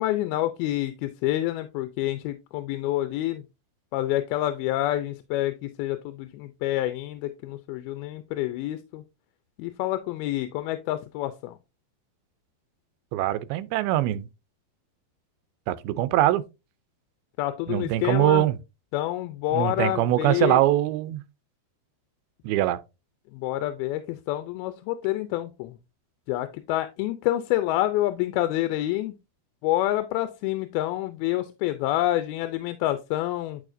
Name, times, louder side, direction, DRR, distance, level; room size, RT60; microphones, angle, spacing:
voice 1, 0.0-3.4 3.9-9.0 9.6-11.6 17.4-18.5 18.9-20.6 23.3-25.8 26.3-29.2 29.6-33.6, left 15 dB, 85° left, 2.5 m, -28 dB
voice 2, 13.1-14.3 15.7-16.4 17.7-18.6 19.5-21.2 22.4-22.8, right 14 dB, 85° right, 2.5 m, -23 dB
11.0 x 4.9 x 2.6 m
omnidirectional pair, 4.4 m